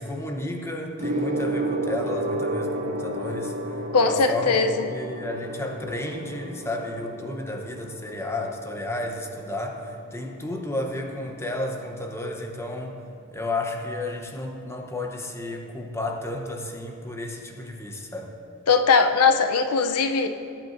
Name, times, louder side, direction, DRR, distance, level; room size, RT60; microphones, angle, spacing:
voice 1, 0.0-13.0 13.3-18.3, left 1 dB, 10° left, 2 dB, 0.8 m, -32 dB
Gong, 1.0-10.8 11.7-12.0, right 1 dB, 60° right, 2.0 m, -32 dB
voice 2, 3.9-4.9 18.7-20.3, left 5 dB, 85° left, 7 dB, 0.6 m, -20 dB
17.5 x 9.0 x 2.6 m, 2.5 s
head